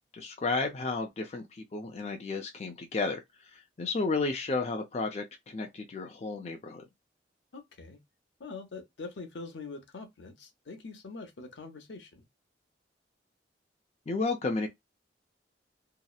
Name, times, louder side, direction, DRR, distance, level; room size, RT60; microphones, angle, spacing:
voice 1, 0.1-6.8 14.1-14.7, left 3 dB, 35° left, 0.4 m, -33 dB
voice 2, 7.5-8.0 8.4-12.2, left 3 dB, 80° left, 0.7 m, -44 dB
2.8 x 2.0 x 2.2 m
head